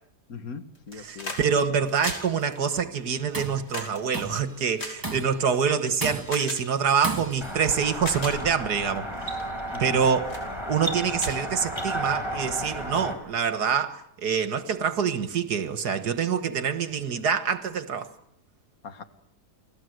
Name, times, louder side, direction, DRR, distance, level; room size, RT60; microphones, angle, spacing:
voice 1, 0.3-1.3 9.7-10.0 18.8-19.0, left 5 dB, 60° left, 2.2 m, -39 dB
sound 1, 0.7-1.5 1.7-5.6 6.3-6.6 7.4-7.5 7.9-8.4 9.0-9.2 9.7-10.0 10.3-10.5 10.8-10.9 11.2-12.1 13.3-13.4, left 2 dB, 90° left, 6.2 m, -37 dB
voice 2, 0.9-9.1 9.8-10.3 10.7-18.1, right 6 dB, 75° right, 1.9 m, -26 dB
Tools, 3.1-3.7 4.1-4.5 5.0-5.5 6.0-6.5 7.0-7.6, right 2 dB, 10° right, 2.0 m, -34 dB
sound 2, 7.4-13.1, right 1 dB, 15° left, 5.3 m, -33 dB
30.0 x 21.0 x 7.9 m
omnidirectional pair, 1.8 m